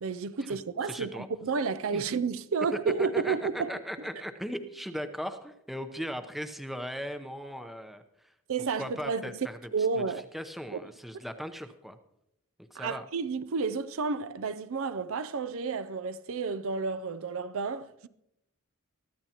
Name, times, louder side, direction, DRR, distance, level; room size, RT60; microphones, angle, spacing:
voice 1, 0.0-3.8 8.5-9.3 9.7-10.3 10.7-10.9 12.7-18.1, right 5 dB, 65° right, 0.5 m, -31 dB
voice 2, 0.8-1.3 1.9-2.0 3.1-8.3 8.8-10.0 10.3-12.0 12.7-13.0, equal, ahead, 0.7 m, -38 dB
22.5 x 13.5 x 2.9 m
head